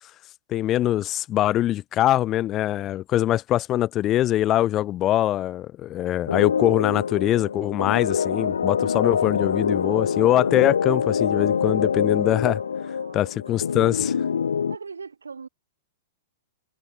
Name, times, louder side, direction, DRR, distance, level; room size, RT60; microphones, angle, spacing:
voice 1, 0.5-12.6 13.1-14.1, left 13 dB, 30° left, 0.5 m, -23 dB
sound 1, 6.3-14.8, left 6 dB, 80° left, 0.7 m, -25 dB
voice 2, 12.4-13.6 14.7-15.5, right 5 dB, 85° right, 2.1 m, -41 dB
hypercardioid pair, 110°, 0 cm